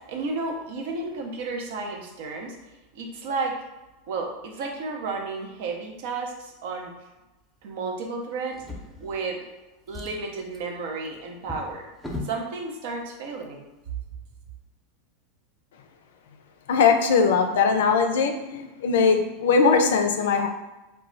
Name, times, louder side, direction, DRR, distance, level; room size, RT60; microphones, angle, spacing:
voice 1, 0.0-2.6 2.9-3.6 4.1-6.9 7.6-8.6 9.0-9.5 9.9-11.9 12.2-13.7, right 3 dB, 70° right, 2 dB, 0.6 m, -32 dB
Drawer open or close, 8.5-9.5 9.8-12.4 13.3-13.4 13.8-13.9, left 2 dB, 10° left, 0.6 m, -39 dB
voice 2, 16.7-20.5, left 5 dB, 80° left, 6 dB, 0.3 m, -20 dB
2.2 x 2.0 x 3.8 m, 1.1 s
hypercardioid pair, 105°, 0 cm